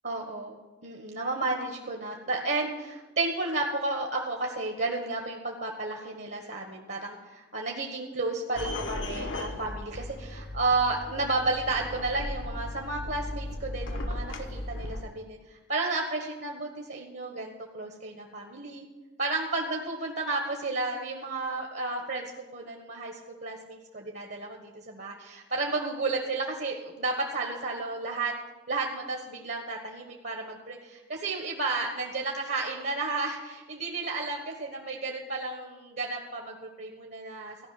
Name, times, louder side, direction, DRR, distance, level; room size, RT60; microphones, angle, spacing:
voice 1, 0.0-0.6 0.8-18.9 19.2-28.3 28.7-37.7, right 3 dB, 60° right, 2 dB, 1.3 m, -32 dB
sound 1, 8.6-15.0, left 1 dB, 80° left, 1.2 m, -36 dB
14.5 x 5.7 x 9.8 m, 1.2 s
head